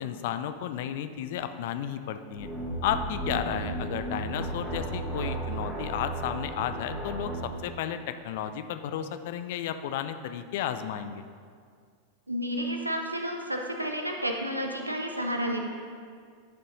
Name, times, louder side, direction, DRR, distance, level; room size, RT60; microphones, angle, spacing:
voice 1, 0.0-2.5 2.8-11.2, left 9 dB, 50° left, 9 dB, 0.5 m, -33 dB
sound 1, 2.3-7.5, right 2 dB, 5° right, 1.8 m, -34 dB
voice 2, 12.3-15.6, equal, 85° right, 2 dB, 0.9 m, -31 dB
11.5 x 5.4 x 4.1 m, 2.1 s
figure-of-eight pair, 90°, 0 cm